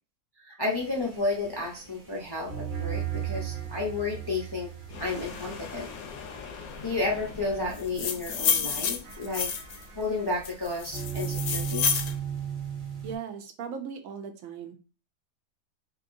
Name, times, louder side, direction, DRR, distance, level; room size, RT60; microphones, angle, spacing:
voice 1, 0.4-4.7 5.0-5.9 6.8-9.5 10.0-12.0, left 3 dB, 40° left, -3 dB, 0.3 m, -32 dB
sound 1, 0.7-13.2, right 8 dB, 45° right, 0.8 m, -37 dB
sound 2, 4.9-9.2, left 5 dB, 90° left, 1.2 m, -43 dB
sound 3, 7.8-9.8 10.4-12.1, left 7 dB, 70° left, 0.9 m, -29 dB
voice 2, 13.0-14.7, right 7 dB, 75° right, 6 dB, 1.0 m, -38 dB
3.3 x 2.6 x 2.6 m, 0.35 s
omnidirectional pair, 1.5 m